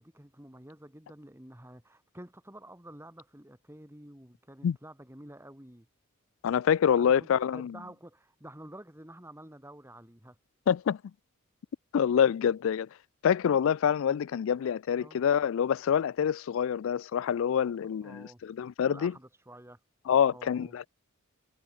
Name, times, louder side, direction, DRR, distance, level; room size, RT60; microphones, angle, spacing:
voice 1, 0.0-5.9 6.9-10.4 14.1-14.3 15.0-15.2 17.8-18.4 18.8-19.8 20.3-20.7, right 1 dB, 10° right, 2.8 m, -49 dB
voice 2, 6.4-7.8 10.7-11.0 11.9-12.9 13.2-19.1 20.1-20.9, left 8 dB, 60° left, 0.3 m, -26 dB
head